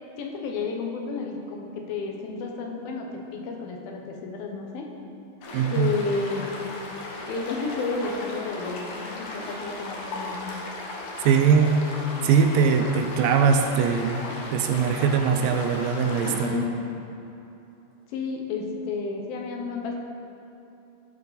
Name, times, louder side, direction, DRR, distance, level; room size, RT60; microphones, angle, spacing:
voice 1, 0.2-4.9 5.7-6.5 7.3-10.4 16.2-16.7 18.1-20.0, left 4 dB, 80° left, 1 dB, 2.8 m, -31 dB
sound 1, 5.4-16.5, left 2 dB, 65° left, 2.2 m, -36 dB
voice 2, 5.5-5.9 11.2-11.8 12.2-14.2 14.5-16.6, right 6 dB, 80° right, 5 dB, 2.2 m, -21 dB
14.5 x 5.7 x 4.0 m, 2.9 s
omnidirectional pair, 4.2 m